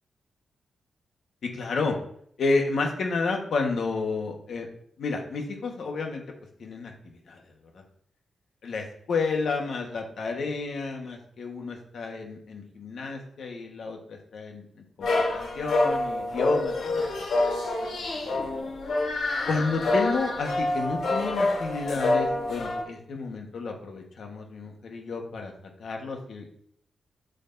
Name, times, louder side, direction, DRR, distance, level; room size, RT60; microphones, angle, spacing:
voice 1, 1.4-2.0 2.4-4.7 5.0-6.2 6.6-6.9 7.3-7.4 8.6-14.6 15.0-17.0 19.4-25.5 25.8-26.5, left 4 dB, 60° left, 2 dB, 1.4 m, -31 dB
sound 1, 15.0-22.8, left 2 dB, 85° left, 3.1 m, -27 dB
8.4 x 7.9 x 2.7 m, 0.66 s
wide cardioid pair, 175°, 0 cm